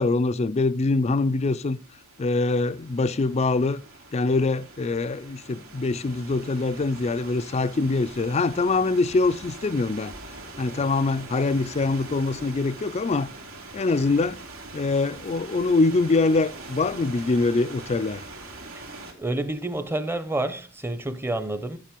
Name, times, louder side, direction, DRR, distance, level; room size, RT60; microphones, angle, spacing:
voice 1, 0.0-1.8 2.2-3.8 4.1-10.1 10.6-13.3 13.7-14.4 14.7-18.2, left 3 dB, 30° left, 0.4 m, -24 dB
sound 1, 1.1-19.1, right 2 dB, 85° right, 2.8 m, -43 dB
voice 2, 19.2-21.8, right 2 dB, 10° right, 0.7 m, -29 dB
11.0 x 7.4 x 5.1 m
head